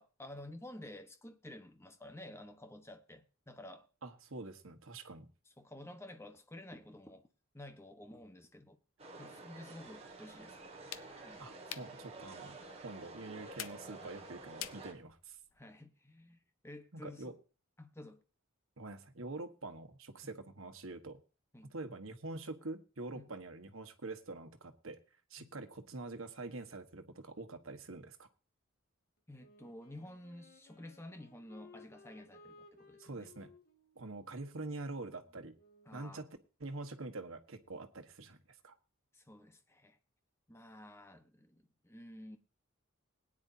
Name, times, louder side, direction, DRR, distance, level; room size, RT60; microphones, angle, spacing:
voice 1, 0.0-3.9 5.6-7.3 7.5-8.8 9.2-10.6 11.2-11.5 15.5-17.4 17.8-18.2 20.2-20.3 21.5-21.7 23.1-23.3 25.4-25.5 29.3-33.3 35.9-36.2 39.1-40.0 40.5-42.4, left 1 dB, 10° left, 1.1 m, -51 dB
voice 2, 4.0-5.3 11.4-15.4 16.9-17.3 18.8-21.2 21.6-25.0 25.3-28.3 33.0-33.5 33.9-35.5 35.9-36.3 36.6-38.4 38.6-38.7, right 2 dB, 75° right, 1.4 m, -45 dB
sound 1, 9.0-14.9, right 3 dB, 30° right, 1.9 m, -50 dB
sound 2, 10.1-15.6, left 11 dB, 75° left, 0.7 m, -51 dB
Wind instrument woodwind instrument, 29.3-36.0, left 3 dB, 45° left, 1.9 m, -61 dB
20.5 x 9.9 x 2.8 m
head